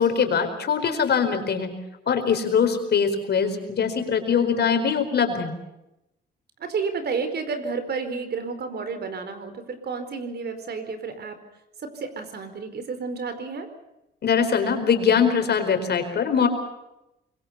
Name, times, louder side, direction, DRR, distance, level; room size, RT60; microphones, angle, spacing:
voice 1, 0.0-1.7 2.1-5.5 14.2-16.5, left 6 dB, 55° left, 7 dB, 4.6 m, -22 dB
voice 2, 6.6-11.4 11.8-13.7, right 5 dB, 55° right, 9 dB, 4.5 m, -31 dB
25.5 x 22.5 x 5.8 m, 0.90 s
cardioid pair, 90°, 20 cm